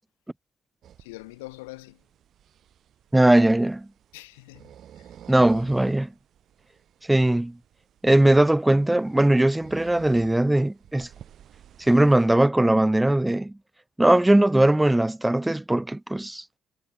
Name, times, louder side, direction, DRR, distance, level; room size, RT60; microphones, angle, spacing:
sound 1, 0.8-12.3, right 10 dB, 60° right, 6.0 m, -51 dB
voice 1, 1.0-2.0 4.1-5.2, left 23 dB, 85° left, 1.3 m, -44 dB
voice 2, 3.1-3.9 5.3-6.1 7.1-7.6 8.0-11.1 11.8-13.5 14.0-16.4, right 1 dB, 10° right, 0.5 m, -20 dB
hypercardioid pair, 50°, 0 cm